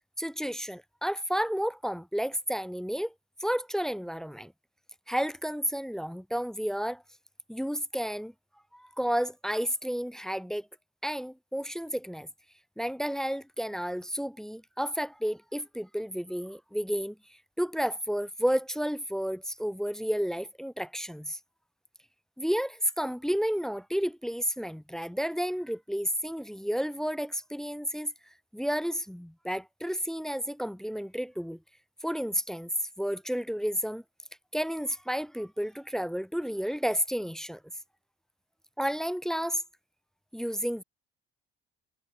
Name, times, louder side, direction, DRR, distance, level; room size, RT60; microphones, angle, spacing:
voice 1, 0.2-3.1 3.4-4.5 5.1-7.0 7.5-8.3 8.7-10.7 11.0-12.3 12.8-17.2 17.6-21.4 22.4-28.1 28.5-31.6 32.0-32.7 33.0-34.0 34.5-37.6 38.8-39.6 40.3-40.8, equal, ahead, 0.7 m, -31 dB
figure-of-eight pair, 55°, 30 cm